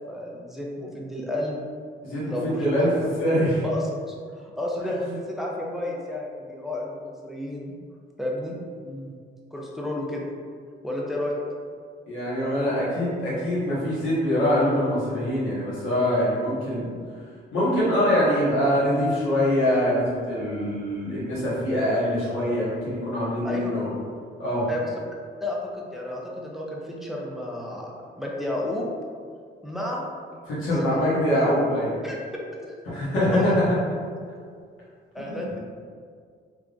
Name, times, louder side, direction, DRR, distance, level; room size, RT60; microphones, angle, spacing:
voice 1, 0.1-1.6 2.2-2.9 3.6-7.7 8.2-8.6 9.5-10.3 10.8-11.4 23.4-23.7 24.7-24.9 25.4-27.9 28.2-28.8 29.6-30.0 30.7-31.0 32.0-32.2 32.7-32.8 33.3-33.5 35.1-35.6, left 1 dB, ahead, -2 dB, 0.5 m, -31 dB
voice 2, 2.0-3.6 8.8-9.1 12.1-16.9 17.5-23.9 24.4-24.7 30.5-32.0 32.9-33.6 35.3-35.4, equal, 85° left, -8 dB, 1.5 m, -24 dB
3.5 x 3.4 x 2.5 m, 2.1 s
cardioid pair, 90°, 20 cm